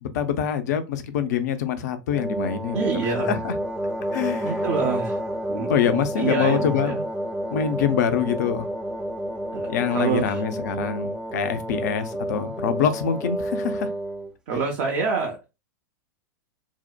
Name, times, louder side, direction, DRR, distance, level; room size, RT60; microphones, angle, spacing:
voice 1, 0.0-2.9 3.3-3.5 4.1-4.6 5.7-6.9 7.5-8.7 9.7-13.9, left 8 dB, 60° left, 0.5 m, -25 dB
sound 1, 2.1-14.3, right 1 dB, 5° right, 0.3 m, -30 dB
voice 2, 2.7-3.4 4.4-5.2 5.5-7.0 9.5-10.4 14.5-15.5, right 5 dB, 50° right, 0.6 m, -27 dB
2.7 x 2.0 x 2.3 m
figure-of-eight pair, 100°, 10 cm